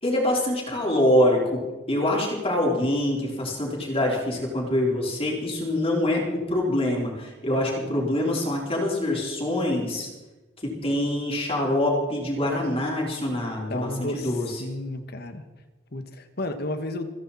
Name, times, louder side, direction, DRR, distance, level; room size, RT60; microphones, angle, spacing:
voice 1, 0.0-1.6 1.9-10.1 10.6-14.6, left 1 dB, 35° left, -2 dB, 4.3 m, -25 dB
voice 2, 13.7-14.3 14.6-15.4 15.9-17.1, left 1 dB, 60° left, 8 dB, 1.7 m, -32 dB
29.0 x 10.5 x 4.3 m, 1.1 s
head